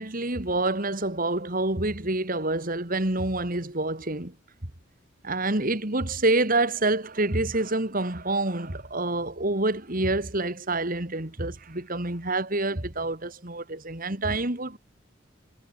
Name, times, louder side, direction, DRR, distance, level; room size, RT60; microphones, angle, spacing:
voice 1, 0.0-4.3 5.2-14.8, right 2 dB, 40° right, 2.6 m, -27 dB
head